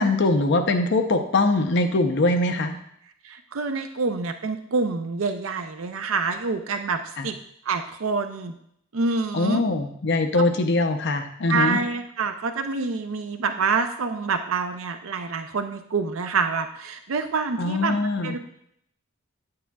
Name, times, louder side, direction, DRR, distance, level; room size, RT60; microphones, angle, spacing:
voice 1, 0.0-2.8 7.2-7.3 9.3-11.8 17.6-18.3, left 2 dB, 55° left, 7 dB, 0.6 m, -22 dB
voice 2, 3.2-7.4 7.7-8.5 8.9-9.6 11.5-18.0 18.2-18.4, right 4 dB, 70° right, 7 dB, 0.5 m, -27 dB
9.2 x 8.6 x 2.3 m, 0.71 s
head